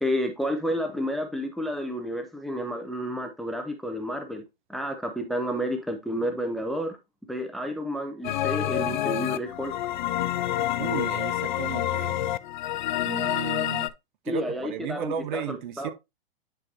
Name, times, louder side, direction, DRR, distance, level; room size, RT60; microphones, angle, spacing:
voice 1, 0.0-4.4 4.7-7.0 7.3-9.7 14.3-15.9, equal, ahead, 0.6 m, -30 dB
sound 1, 8.2-13.9, left 13 dB, 50° left, 0.5 m, -28 dB
voice 2, 10.8-12.2 13.0-13.9 14.3-15.9, right 9 dB, 50° right, 1.1 m, -34 dB
9.7 x 4.7 x 2.6 m
hypercardioid pair, 130°, 30 cm